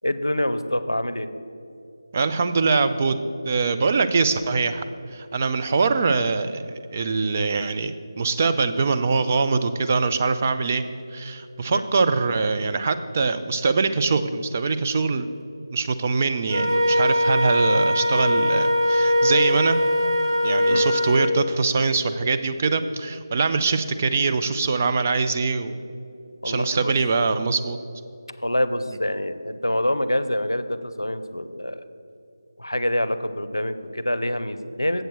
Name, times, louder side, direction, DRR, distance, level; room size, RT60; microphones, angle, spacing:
voice 1, 0.0-1.3 11.7-11.9 20.7-20.9 26.4-26.9 28.4-31.8 32.6-35.0, left 1 dB, 90° left, 12 dB, 0.5 m, -26 dB
voice 2, 2.1-3.2 3.4-4.8 5.1-10.8 11.1-15.3 15.7-19.8 20.4-25.8 26.4-27.8, right 4 dB, 30° right, 9 dB, 0.4 m, -23 dB
Wind instrument woodwind instrument, 16.5-21.3, left 1 dB, 75° right, 1.1 m, -21 dB
7.8 x 7.7 x 4.6 m, 2.6 s
figure-of-eight pair, 160°, 2 cm